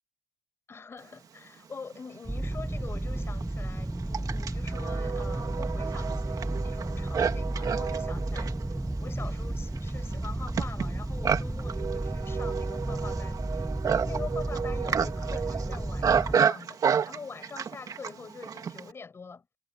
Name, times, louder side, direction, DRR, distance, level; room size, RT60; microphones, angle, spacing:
voice 1, 0.7-16.8 17.1-19.5, left 5 dB, 25° left, 5.3 m, -44 dB
Livestock farm animals working animals, 2.1-2.2 3.0-18.9, right 7 dB, 35° right, 2.0 m, -31 dB
sound 1, 2.3-16.4, right 1 dB, 5° right, 0.4 m, -33 dB
cardioid pair, 125°, 10 cm